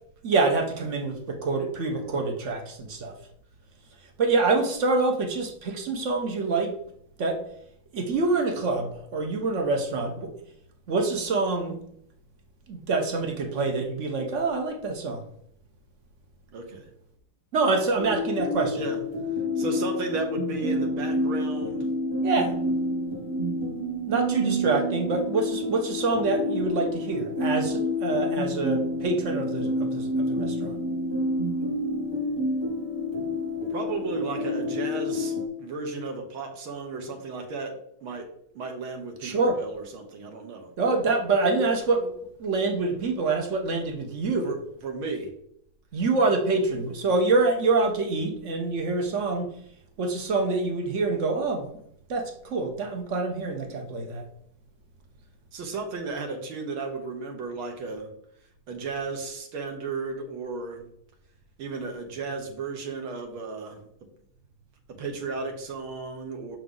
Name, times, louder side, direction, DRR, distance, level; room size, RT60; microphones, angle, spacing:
voice 1, 0.2-3.1 4.2-6.8 7.2-7.4 7.9-10.3 10.9-11.8 12.7-15.2 17.5-18.8 22.2-22.6 24.1-30.8 39.2-39.6 40.8-42.1 42.4-44.5 45.9-49.5 50.0-51.7 52.1-54.3, right 3 dB, 50° right, 4 dB, 0.9 m, -26 dB
voice 2, 16.5-16.9 18.7-19.0 19.6-21.9 33.7-38.3 38.6-40.7 44.4-44.6 44.8-45.3 55.5-58.1 58.7-60.9 61.6-63.8 65.0-66.6, right 4 dB, 75° right, 3 dB, 1.9 m, -34 dB
sound 1, 18.0-35.5, left 1 dB, 25° right, 0.6 m, -28 dB
6.8 x 6.1 x 3.8 m, 0.70 s
omnidirectional pair, 2.3 m